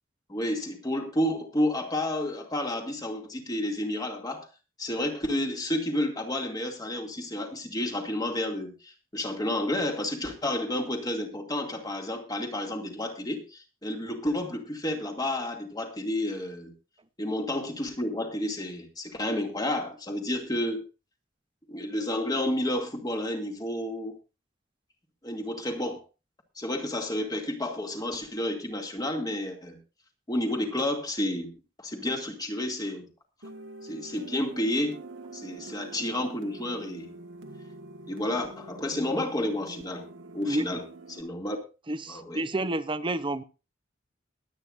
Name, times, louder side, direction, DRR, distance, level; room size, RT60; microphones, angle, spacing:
voice 1, 0.3-4.5 4.8-16.7 17.2-20.8 21.7-24.1 25.2-26.0 26.6-29.8 30.3-31.5 31.8-33.1 33.8-35.0 35.3-37.1 38.1-40.1 40.3-40.8 41.1-41.6 42.1-42.4, left 1 dB, 20° left, 2 dB, 2.4 m, -30 dB
sound 1, 33.4-41.2, right 2 dB, 80° right, 1.8 m, -45 dB
voice 2, 41.9-43.4, right 2 dB, 25° right, 12 dB, 0.7 m, -29 dB
22.5 x 9.2 x 2.6 m, 0.31 s
head